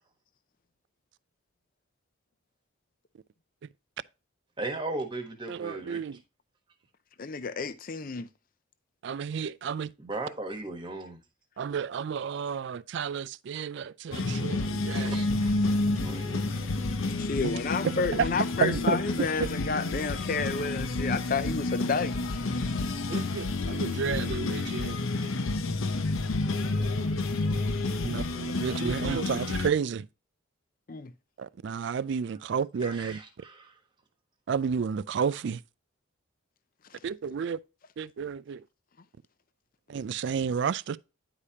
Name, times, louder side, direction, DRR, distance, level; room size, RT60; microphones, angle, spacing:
voice 1, 4.6-6.0 10.0-11.2 15.0-15.5 15.8-17.0 25.1-25.4 32.8-33.8, right 2 dB, 20° right, 1.2 m, -38 dB
voice 2, 5.5-6.2 9.0-9.9 11.6-15.1 17.4-17.5 18.2-18.3 18.6-19.0 19.4-19.5 23.1-25.0 28.0-30.1 31.4-33.2 34.5-35.6 37.0-37.6 38.0-38.6 39.9-41.0, right 6 dB, 55° right, 0.3 m, -31 dB
voice 3, 7.2-8.3 17.2-22.2 30.9-31.1, left 4 dB, 40° left, 0.5 m, -30 dB
sound 1, 14.1-29.7, left 2 dB, 70° left, 0.7 m, -30 dB
9.8 x 4.9 x 2.8 m
head